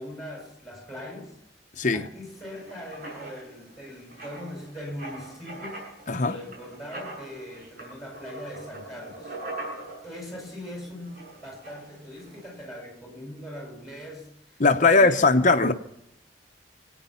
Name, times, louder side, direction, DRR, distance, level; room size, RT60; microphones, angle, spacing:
voice 1, 0.0-1.4 1.9-5.8 6.2-9.4 10.0-15.3, left 1 dB, ahead, 5.8 m, -41 dB
voice 2, 1.8-2.1 6.1-6.4 14.6-15.7, left 3 dB, 45° left, 0.9 m, -19 dB
Writing, 2.2-12.6, right 2 dB, 50° right, 7.1 m, -43 dB
26.0 x 9.4 x 5.7 m
head